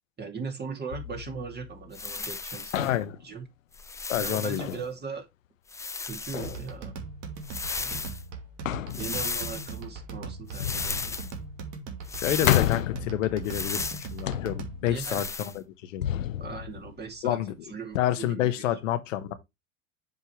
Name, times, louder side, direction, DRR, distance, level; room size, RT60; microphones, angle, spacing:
voice 1, 0.2-3.0 3.2-3.5 4.2-5.3 6.0-6.9 7.8-8.1 9.0-11.2 14.9-15.3 16.4-17.4 17.7-18.7, right 5 dB, 25° right, 2.5 m, -39 dB
sound 1, 0.9-2.4 2.7-3.3 4.6-4.9 6.3-6.7 8.6-9.5 10.6-11.6 11.9-12.0 12.4-13.8 14.3-15.0 16.0-17.4 17.9-18.0, left 12 dB, 90° left, 0.5 m, -32 dB
sound 2, 1.9-2.9 3.7-4.7 5.7-6.6 7.4-8.2 8.9-9.8 10.5-11.3 12.1-12.8 13.4-14.1 15.0-15.6, left 4 dB, 10° left, 0.4 m, -35 dB
voice 2, 2.7-3.1 4.1-4.6 12.2-16.0 17.2-17.5 18.0-19.3, left 12 dB, 75° left, 1.2 m, -28 dB
sound 3, 6.4-15.1, right 4 dB, 50° right, 2.3 m, -40 dB
7.4 x 5.4 x 3.0 m
hypercardioid pair, 85°, 38 cm